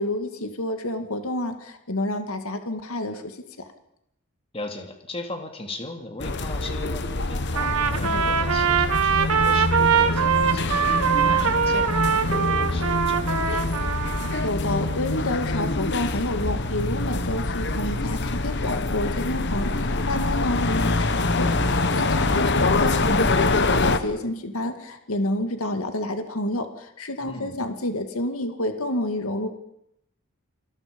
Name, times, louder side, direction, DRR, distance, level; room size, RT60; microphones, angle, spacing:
voice 1, 0.0-3.7 14.2-29.5, left 1 dB, 75° left, 7 dB, 2.1 m, -29 dB
voice 2, 4.5-13.7 22.1-22.4 27.2-27.6, left 2 dB, 25° left, 4 dB, 2.9 m, -38 dB
sound 1, 6.2-24.0, left 2 dB, 50° left, 1.3 m, -25 dB
Trumpet, 7.5-14.5, right 7 dB, 75° right, 1.5 m, -22 dB
28.0 x 20.5 x 5.4 m, 0.80 s
head